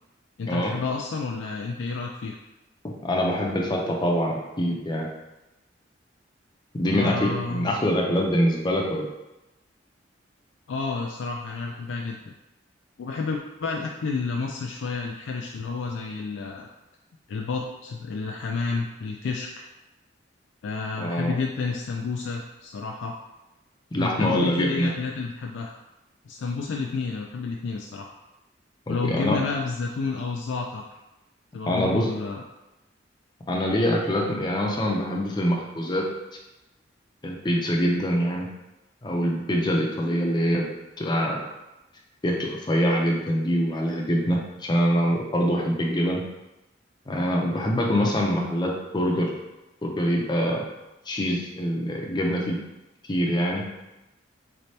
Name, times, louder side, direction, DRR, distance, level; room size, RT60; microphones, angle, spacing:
voice 1, 0.4-2.4 6.8-7.7 10.7-12.2 13.0-16.7 17.3-19.5 20.6-23.2 24.0-25.8 26.3-28.1 28.9-30.8 31.5-32.4 47.9-48.1, left 4 dB, 70° left, 0 dB, 0.3 m, -30 dB
voice 2, 2.8-5.1 6.8-9.1 21.0-21.3 23.9-24.9 28.9-29.4 31.7-32.1 33.5-36.0 37.2-38.5 39.0-40.7 41.0-41.4 42.2-46.2 47.1-49.3 49.8-50.6 51.1-52.6 53.1-53.7, equal, 25° left, -1 dB, 0.6 m, -24 dB
4.0 x 3.3 x 2.8 m, 1.0 s
head